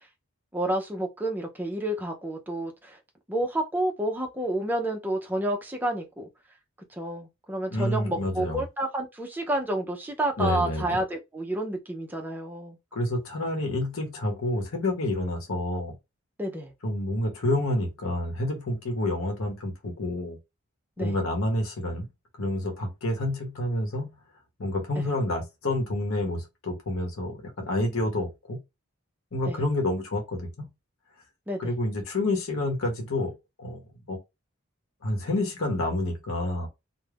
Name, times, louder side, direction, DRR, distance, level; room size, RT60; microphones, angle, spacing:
voice 1, 0.5-3.0 3.3-6.3 6.9-12.8 16.4-16.7 21.0-21.2 24.9-25.1 29.5-29.6 31.5-31.7, right 1 dB, 10° right, 0.4 m, -30 dB
voice 2, 7.7-8.6 10.4-10.9 12.9-15.9 16.8-20.4 21.0-22.1 22.4-24.1 24.6-28.6 29.3-30.7 31.6-33.3 33.6-33.8 34.1-34.2 35.0-36.7, left 1 dB, 75° left, 0.9 m, -28 dB
2.4 x 2.1 x 3.3 m
head